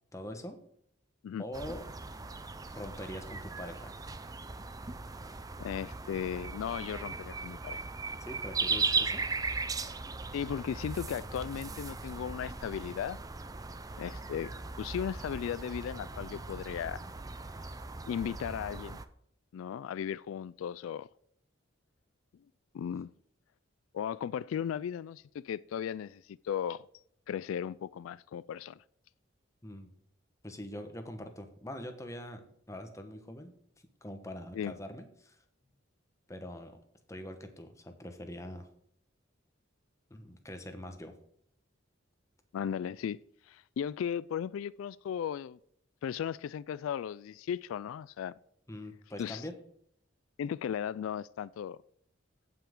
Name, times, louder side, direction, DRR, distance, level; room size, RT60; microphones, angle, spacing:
voice 1, 0.1-0.6 1.4-1.9 2.7-3.9 8.2-9.2 29.6-29.9 30.4-33.5 34.0-35.4 36.3-36.8 37.1-38.7 40.1-41.1 48.7-49.6, left 1 dB, 15° left, 1.1 m, -43 dB
sound 1, 1.5-19.1, right 4 dB, 20° right, 0.5 m, -38 dB
voice 2, 5.6-7.8 10.3-13.2 14.0-17.0 18.1-19.0 19.5-21.1 22.7-23.1 23.9-26.9 27.3-28.8 34.5-34.7 42.5-43.2 43.5-45.6 46.0-48.3 49.2-49.4 50.4-51.8, left 8 dB, 90° left, 0.3 m, -36 dB
15.5 x 5.8 x 3.7 m
head